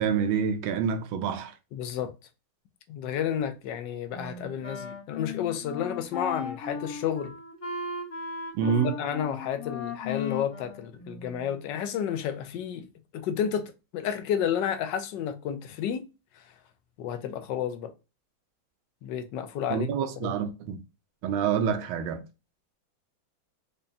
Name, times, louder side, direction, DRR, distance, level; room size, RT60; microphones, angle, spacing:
voice 1, 0.0-1.5 8.5-9.0 19.7-20.8 21.2-22.2, right 7 dB, 85° right, 1.5 m, -27 dB
voice 2, 1.7-2.1 2.9-7.4 8.8-12.9 13.1-16.0 17.0-17.9 19.0-19.9 20.2-20.4, left 9 dB, 70° left, 1.2 m, -31 dB
Wind instrument woodwind instrument, 4.1-11.6, left 4 dB, 35° left, 0.5 m, -37 dB
5.2 x 2.2 x 2.6 m
omnidirectional pair, 2.2 m